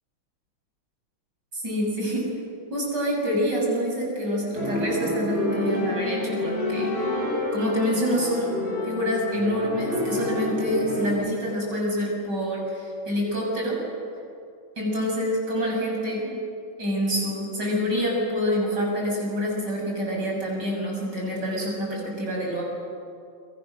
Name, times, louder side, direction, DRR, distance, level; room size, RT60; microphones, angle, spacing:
voice 1, 1.5-2.3 2.7-7.0 7.5-8.5 8.8-13.8 14.8-16.4 16.8-22.6, equal, 55° right, -2 dB, 7.6 m, -26 dB
sound 1, 4.5-11.1, left 1 dB, 45° left, 8.2 m, -28 dB
29.5 x 25.0 x 6.5 m, 2.4 s
omnidirectional pair, 2.2 m